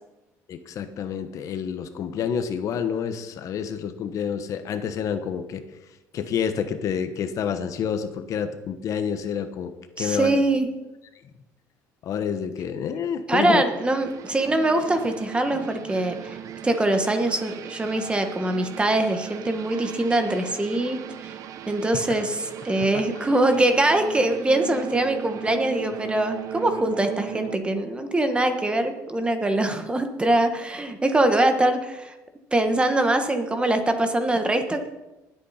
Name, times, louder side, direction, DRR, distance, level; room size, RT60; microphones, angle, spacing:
voice 1, 0.5-5.6 6.1-10.4 12.0-13.6, left 7 dB, 60° left, 9 dB, 1.1 m, -28 dB
voice 2, 10.0-10.7 13.3-16.4 16.6-21.3 21.7-32.1 32.5-34.9, right 1 dB, 15° right, 7 dB, 1.4 m, -23 dB
sound 1, 13.7-27.6, right 9 dB, 60° right, 0.9 m, -38 dB
20.0 x 8.3 x 4.3 m, 1.0 s
cardioid pair, 105°, 6 cm